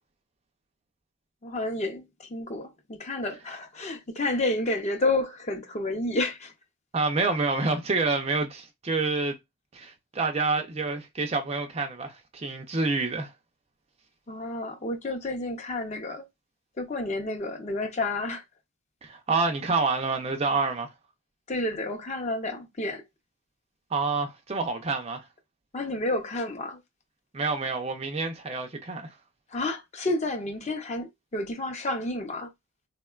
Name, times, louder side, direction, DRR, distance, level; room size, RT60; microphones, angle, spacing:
voice 1, 1.4-6.5 14.3-16.3 16.8-18.4 21.5-23.0 25.7-26.8 29.5-32.5, left 2 dB, 30° left, 0.5 m, -30 dB
voice 2, 6.9-9.4 9.7-13.3 19.0-20.9 23.9-25.2 27.3-29.1, right 3 dB, 30° right, 0.4 m, -28 dB
3.6 x 2.1 x 2.3 m
head